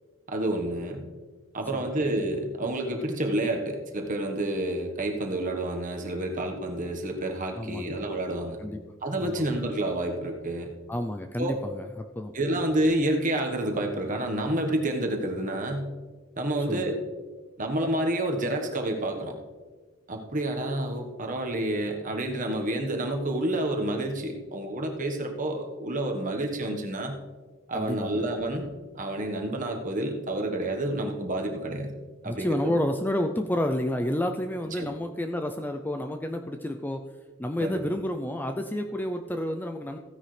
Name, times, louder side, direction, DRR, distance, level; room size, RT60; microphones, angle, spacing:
voice 1, 0.3-1.0 1.5-8.6 9.0-10.7 11.4-11.5 12.3-15.9 16.4-17.0 17.6-19.3 20.1-27.2 27.7-28.7 28.9-31.9 32.2-32.7 34.8-35.0 37.6-37.8, right 1 dB, 40° right, 3 dB, 1.3 m, -29 dB
voice 2, 7.5-8.0 8.6-8.8 9.2-9.5 10.9-12.4 16.7-16.8 27.7-28.2 32.2-37.1 37.4-40.0, left 1 dB, 10° left, 5 dB, 0.4 m, -30 dB
15.5 x 9.9 x 3.3 m, 1.4 s
head